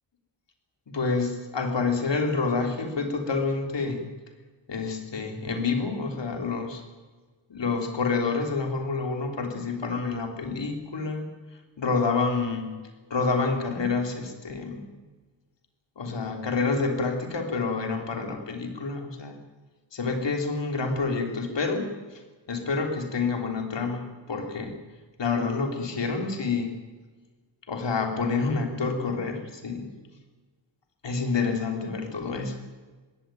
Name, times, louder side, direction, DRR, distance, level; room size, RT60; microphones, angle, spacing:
voice 1, 0.9-4.0 4.7-6.8 7.5-11.3 11.8-12.7 13.1-14.9 16.0-19.4 19.9-22.2 22.5-24.8 25.2-26.7 27.7-29.9 31.0-32.6, left 4 dB, 65° left, 4 dB, 3.8 m, -28 dB
22.0 x 17.0 x 9.3 m, 1.4 s
wide cardioid pair, 160°, 47 cm